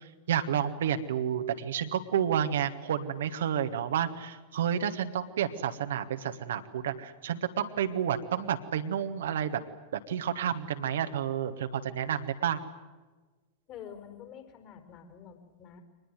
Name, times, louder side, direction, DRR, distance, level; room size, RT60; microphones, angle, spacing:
voice 1, 0.0-9.6 9.9-12.6, right 9 dB, 60° right, 8 dB, 1.5 m, -30 dB
voice 2, 13.7-15.8, left 8 dB, 40° left, 5 dB, 5.0 m, -47 dB
24.5 x 20.5 x 9.6 m, 1.3 s
figure-of-eight pair, 90°, 0 cm